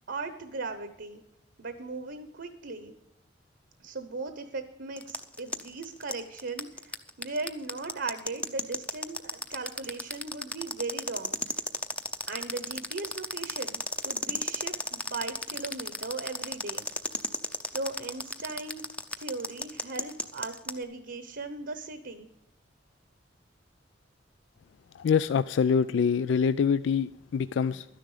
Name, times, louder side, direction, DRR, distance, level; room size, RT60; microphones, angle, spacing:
voice 1, 0.1-1.2 1.6-2.9 3.8-11.4 12.3-16.9 17.7-18.8 19.2-22.3, right 3 dB, 65° right, 9 dB, 1.0 m, -38 dB
sound 1, 5.0-20.8, left 1 dB, 5° left, 0.6 m, -33 dB
voice 2, 25.0-27.9, left 6 dB, 70° left, 15 dB, 0.3 m, -25 dB
12.5 x 10.0 x 5.0 m, 0.87 s
head